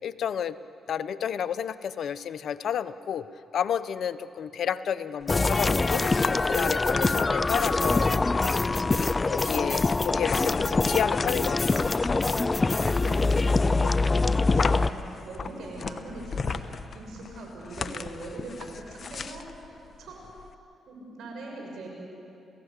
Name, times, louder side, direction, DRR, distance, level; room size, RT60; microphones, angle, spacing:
voice 1, 0.0-0.6 0.9-3.3 3.5-6.0 6.3-8.1 8.6-11.9 13.8-13.9, left 8 dB, 70° left, 14 dB, 0.7 m, -31 dB
sound 1, 5.2-20.5, left 5 dB, 50° left, 1.1 m, -37 dB
sound 2, 5.3-14.9, left 3 dB, 30° left, 0.4 m, -24 dB
voice 2, 12.6-19.4 20.0-20.2 20.9-21.9, right 2 dB, 75° right, 0 dB, 6.2 m, -42 dB
29.5 x 16.5 x 8.2 m, 2.7 s
supercardioid pair, 60°, 0 cm